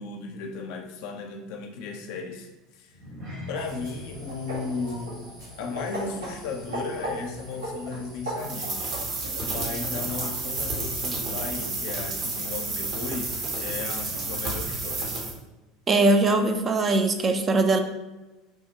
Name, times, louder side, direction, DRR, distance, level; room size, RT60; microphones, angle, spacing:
voice 1, 0.0-3.0 3.5-5.3 5.6-8.8 9.4-15.1, left 4 dB, 65° left, 3 dB, 0.5 m, -35 dB
sound 1, 2.9-7.5 7.8-8.1 8.5-8.6, left 1 dB, 65° right, 1.2 m, -44 dB
sound 2, 3.5-15.1, right 1 dB, 85° right, 1.0 m, -40 dB
sound 3, 8.4-15.3, right 3 dB, 50° right, 0.9 m, -31 dB
voice 2, 15.9-17.8, right 2 dB, 30° right, 6 dB, 0.4 m, -21 dB
4.5 x 2.1 x 2.8 m, 1.1 s
hypercardioid pair, 80°, 0 cm